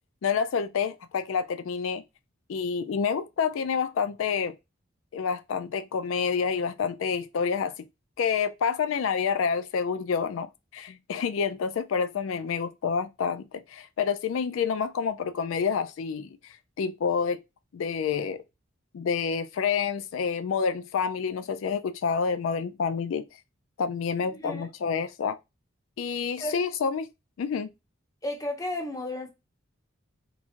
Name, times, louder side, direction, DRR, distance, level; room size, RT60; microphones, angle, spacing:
voice 1, 0.2-2.0 2.5-4.5 5.1-7.7 8.2-17.4 17.7-18.4 18.9-23.2 23.8-25.4 26.0-27.1 27.4-27.7, left 6 dB, 80° left, 0.4 m, -28 dB
voice 2, 24.3-24.7 26.1-26.6 28.2-29.3, left 1 dB, 15° left, 0.8 m, -34 dB
3.6 x 3.1 x 2.4 m
head